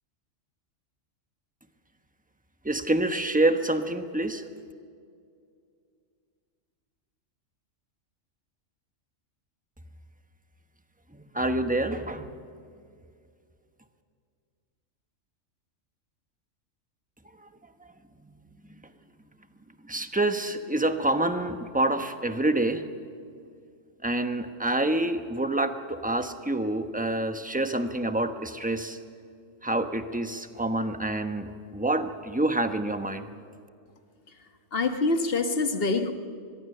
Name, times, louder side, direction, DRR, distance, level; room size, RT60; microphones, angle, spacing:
voice 1, 2.6-4.4 11.1-12.3 17.8-17.9 19.8-22.8 24.0-29.0 29.6-33.3, right 2 dB, 5° right, 1.0 m, -27 dB
voice 2, 34.7-36.1, left 3 dB, 45° left, 1.5 m, -25 dB
24.5 x 21.5 x 6.7 m
omnidirectional pair, 1.4 m